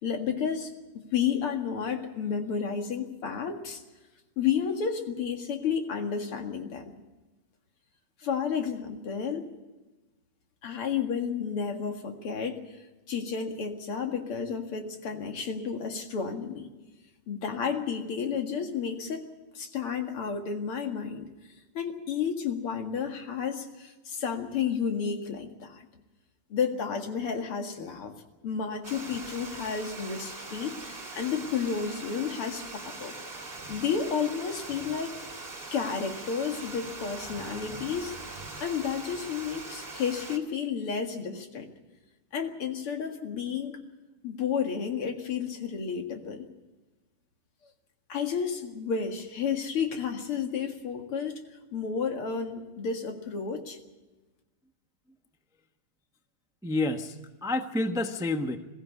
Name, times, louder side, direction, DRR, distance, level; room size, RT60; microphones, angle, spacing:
voice 1, 0.0-0.7 1.1-3.8 4.4-6.9 8.2-9.5 10.6-12.6 13.1-16.7 17.3-19.3 19.5-21.3 21.7-25.9 26.5-28.1 28.4-33.1 33.7-35.1 35.7-41.7 42.3-43.8 44.2-46.5 48.1-51.4 51.7-53.8, left 6 dB, 80° left, 4 dB, 2.9 m, -31 dB
Water, 28.8-40.4, right 3 dB, 25° right, 2.3 m, -41 dB
voice 2, 56.6-58.6, left 2 dB, 5° right, 6 dB, 0.5 m, -29 dB
21.5 x 15.0 x 8.3 m, 1.1 s
omnidirectional pair, 2.4 m